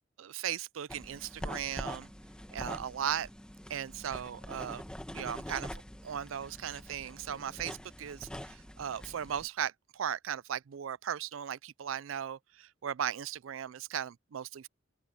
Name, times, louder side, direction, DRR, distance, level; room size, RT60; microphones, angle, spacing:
voice 1, 0.2-2.1 2.5-3.3 3.7-4.8 5.1-14.7, right 9 dB, 75° right, 0.4 m, -37 dB
sound 1, 0.9-9.5, equal, 5° left, 1.3 m, -45 dB
open air
head